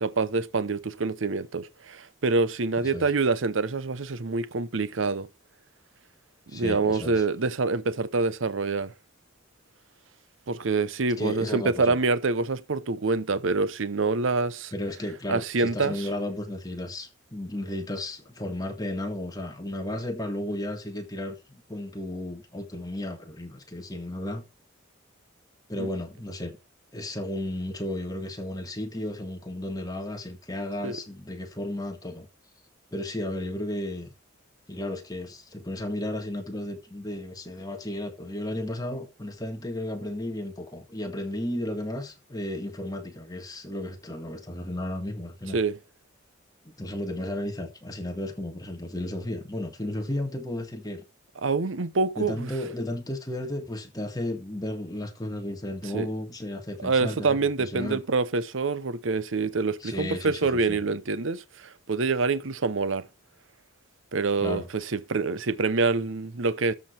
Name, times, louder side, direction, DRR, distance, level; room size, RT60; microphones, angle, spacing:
voice 1, 0.0-5.3 6.5-8.9 10.5-14.7 15.3-16.1 25.8-25.9 30.8-31.0 45.5-45.8 51.4-52.5 55.9-56.1 56.8-63.1 64.1-66.7, right 4 dB, 75° right, 0.8 m, -26 dB
voice 2, 6.5-7.2 11.2-12.0 14.7-24.4 25.7-26.5 26.9-32.3 32.9-34.1 34.7-45.6 46.6-51.0 52.2-58.0 59.8-60.8 64.4-64.7, left 1 dB, 20° left, 1.7 m, -34 dB
13.5 x 4.9 x 5.8 m
head